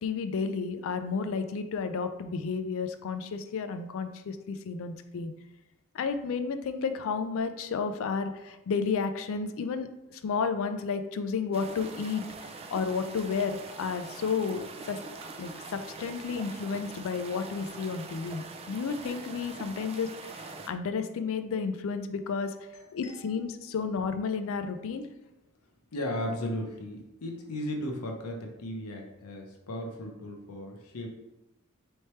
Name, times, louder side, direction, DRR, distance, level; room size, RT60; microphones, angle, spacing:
voice 1, 0.0-5.3 5.9-9.9 10.2-12.2 12.7-15.0 15.4-22.5 22.9-25.1, left 5 dB, 65° left, 9 dB, 0.4 m, -32 dB
sound 1, 11.5-20.7, right 3 dB, 25° right, 0.3 m, -43 dB
voice 2, 22.7-23.2 25.9-31.1, left 1 dB, 85° left, 1 dB, 0.8 m, -36 dB
4.3 x 3.2 x 3.1 m, 0.95 s
head